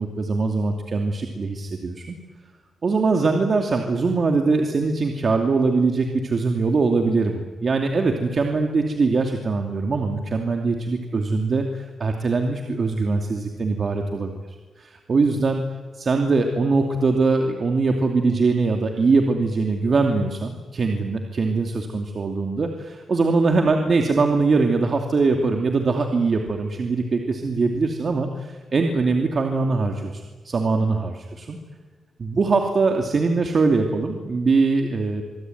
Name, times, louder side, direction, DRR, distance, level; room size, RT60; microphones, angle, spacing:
voice 1, 0.0-2.2 2.8-14.3 14.8-15.6 15.9-31.6 32.2-35.2, right 3 dB, 50° right, 3 dB, 2.7 m, -22 dB
25.5 x 23.0 x 9.5 m, 1.3 s
cardioid pair, 85°, 0 cm